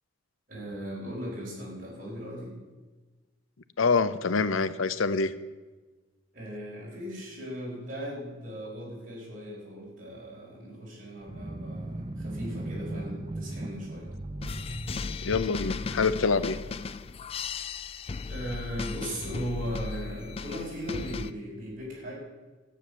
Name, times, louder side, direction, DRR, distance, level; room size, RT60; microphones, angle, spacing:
voice 1, 0.5-2.6 6.3-14.1 17.5-18.0 18.3-22.1, equal, 40° right, -5 dB, 5.4 m, -38 dB
voice 2, 3.8-5.3 15.2-16.6, left 4 dB, 85° left, 14 dB, 0.7 m, -25 dB
sound 1, 11.2-17.2, right 1 dB, 25° right, 0.7 m, -38 dB
sound 2, 14.4-21.3, left 5 dB, 30° left, 0.3 m, -36 dB
12.5 x 9.3 x 6.8 m, 1.3 s
head